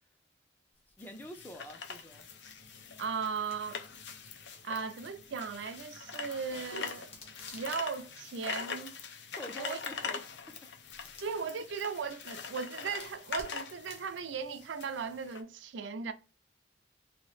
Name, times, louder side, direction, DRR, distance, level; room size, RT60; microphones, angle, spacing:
sound 1, 0.7-15.3, left 3 dB, 35° left, 0.8 m, -59 dB
sound 2, 1.0-15.4, left 5 dB, 65° left, 0.5 m, -43 dB
voice 1, 1.0-2.3 9.4-10.5, equal, 10° left, 0.4 m, -46 dB
sound 3, 2.1-7.6, equal, 85° left, 1.1 m, -63 dB
voice 2, 3.0-3.8 4.6-7.1 7.5-9.0 9.6-9.8 11.2-16.1, right 6 dB, 70° right, 0.4 m, -37 dB
2.9 x 2.6 x 3.1 m
head